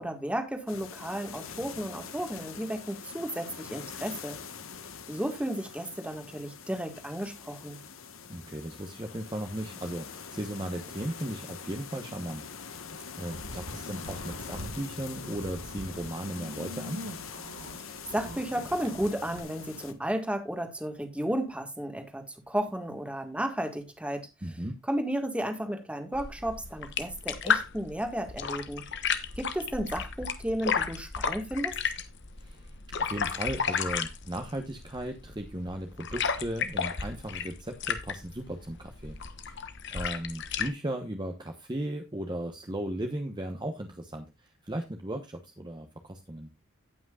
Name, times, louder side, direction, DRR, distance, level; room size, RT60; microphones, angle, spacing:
voice 1, 0.0-4.4 5.1-7.8 17.8-24.3 24.9-28.8 29.4-31.8, right 1 dB, 5° right, 1.7 m, -33 dB
sound 1, 0.7-19.9, left 6 dB, 80° left, 1.4 m, -44 dB
voice 2, 8.3-12.8 13.2-17.1 24.4-24.8 32.4-32.7 33.0-39.2 39.5-39.6 39.9-46.5, right 1 dB, 20° right, 1.0 m, -36 dB
sound 2, 13.2-14.8 15.1-19.4, equal, 75° right, 1.8 m, -43 dB
sound 3, 26.1-40.7, left 6 dB, 60° left, 1.1 m, -33 dB
17.0 x 6.0 x 2.4 m
head